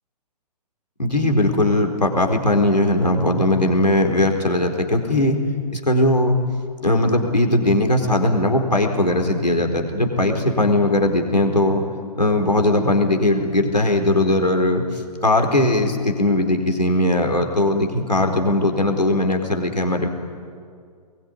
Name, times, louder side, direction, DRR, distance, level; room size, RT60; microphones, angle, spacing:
voice 1, 1.0-5.4 5.7-6.4 6.8-11.8 12.1-14.8 15.2-20.1, left 1 dB, 85° left, 3 dB, 4.4 m, -19 dB
24.5 x 21.5 x 9.8 m, 2.2 s
figure-of-eight pair, 125°, 21 cm